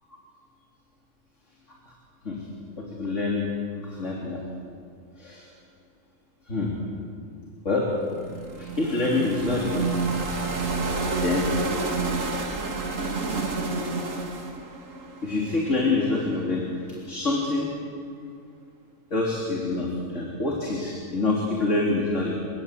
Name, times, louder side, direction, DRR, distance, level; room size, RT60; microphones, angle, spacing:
voice 1, 2.8-3.5 3.8-4.4 5.2-5.5 6.5-6.8 7.7-7.9 8.6-10.0 11.2-11.5 15.2-16.7 17.1-17.7 19.1-22.4, left 2 dB, 60° left, -3 dB, 3.8 m, -26 dB
sound 1, 8.1-16.1, right 3 dB, 70° right, 2.4 m, -29 dB
29.5 x 18.0 x 8.3 m, 2.4 s
omnidirectional pair, 1.4 m